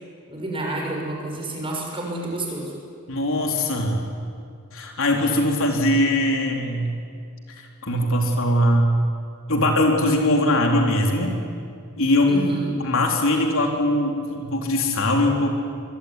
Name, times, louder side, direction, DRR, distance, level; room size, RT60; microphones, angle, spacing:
voice 1, 0.3-2.7 12.3-12.7, right 2 dB, 25° right, -1 dB, 6.5 m, -29 dB
voice 2, 3.1-4.0 4.7-6.9 7.6-8.9 9.5-11.4 12.0-12.4 12.8-15.5, left 1 dB, 65° left, 1 dB, 4.0 m, -21 dB
25.0 x 23.0 x 9.9 m, 2.3 s
head